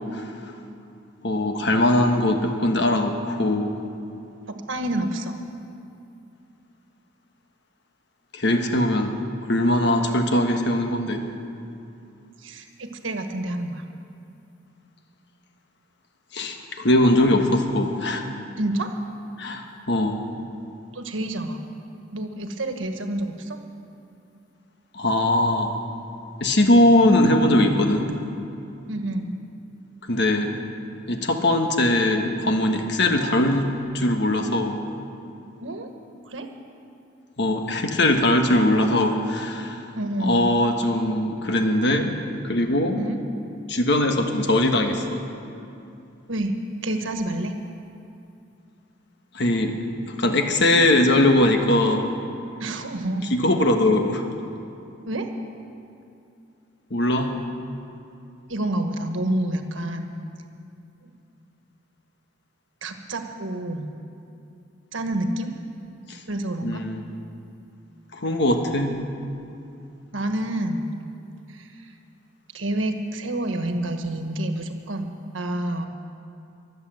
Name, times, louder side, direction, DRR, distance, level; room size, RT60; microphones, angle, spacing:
voice 1, 1.2-3.8 8.3-9.2 9.5-11.2 16.3-18.3 19.4-20.2 24.9-25.8 26.4-28.1 30.1-30.5 31.1-33.7 33.9-34.8 37.4-39.8 40.2-42.2 42.4-43.0 43.7-45.2 49.3-49.7 50.2-52.1 53.3-54.2 56.9-57.3 66.1-66.2 66.6-67.0 68.1-69.0, left 1 dB, 60° left, 5 dB, 1.4 m, -21 dB
voice 2, 4.5-5.3 12.4-13.8 18.6-18.9 20.9-21.6 22.1-23.6 28.9-29.3 35.6-35.9 36.2-36.5 39.9-40.4 42.9-43.2 46.3-46.5 46.8-47.5 52.6-53.3 55.1-55.3 58.5-60.1 61.0-61.1 62.8-63.9 64.9-65.5 66.3-66.8 70.1-70.9 71.5-71.7 72.5-75.9, right 1 dB, 85° right, 6 dB, 1.4 m, -28 dB
22.0 x 8.2 x 7.8 m, 2.6 s
head